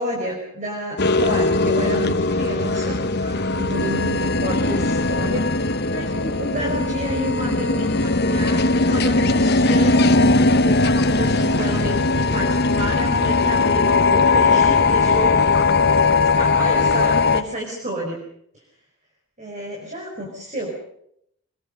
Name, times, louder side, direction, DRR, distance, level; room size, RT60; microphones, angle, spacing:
voice 1, 0.0-10.1 10.6-15.5 16.2-18.3 19.4-20.8, equal, 35° right, -1 dB, 4.9 m, -30 dB
sound 1, 1.0-17.4, left 3 dB, 50° left, 1.2 m, -19 dB
26.0 x 21.0 x 6.5 m, 0.72 s
head